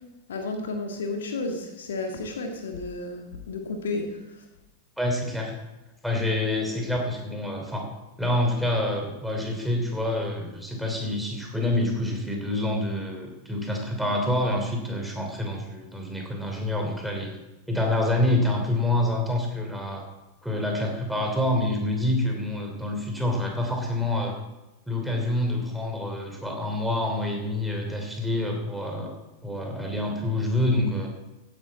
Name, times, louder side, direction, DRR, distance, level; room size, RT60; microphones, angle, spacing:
voice 1, 0.3-4.2, left 3 dB, 65° left, 4 dB, 1.8 m, -32 dB
voice 2, 5.0-5.5 6.0-7.9 8.2-17.3 17.7-20.0 20.4-24.4 24.9-29.1 29.4-31.1, left 1 dB, ahead, 1 dB, 3.2 m, -27 dB
16.0 x 9.8 x 4.2 m, 1.0 s
figure-of-eight pair, 90°, 0 cm